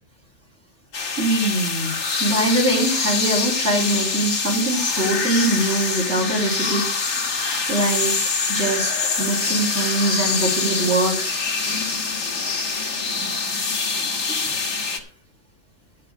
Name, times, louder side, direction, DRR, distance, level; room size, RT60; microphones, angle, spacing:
sound 1, 0.9-15.0, left 4 dB, 65° left, 2.0 m, -24 dB
voice 1, 1.2-1.9 2.2-6.8 7.7-8.1 8.5-11.4 12.3-12.4 14.0-14.6 14.9-15.1, right 2 dB, 50° right, -5 dB, 4.3 m, -23 dB
12.5 x 6.0 x 6.6 m, 0.44 s
omnidirectional pair, 1.5 m